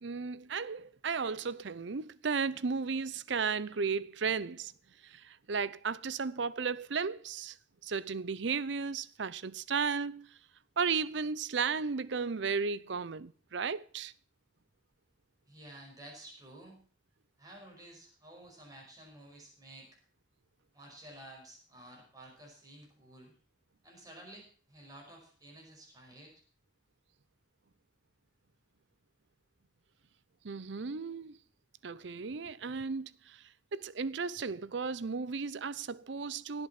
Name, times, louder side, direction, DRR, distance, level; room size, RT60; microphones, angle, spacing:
voice 1, 0.0-4.7 5.0-7.5 7.8-10.3 10.8-14.1 30.4-31.4 31.8-33.4 33.7-36.7, right 5 dB, 70° right, 0.6 m, -34 dB
voice 2, 15.5-16.8 17.4-19.9 20.7-23.3 23.8-26.3, right 1 dB, 20° right, 5.5 m, -52 dB
17.0 x 8.1 x 5.9 m
head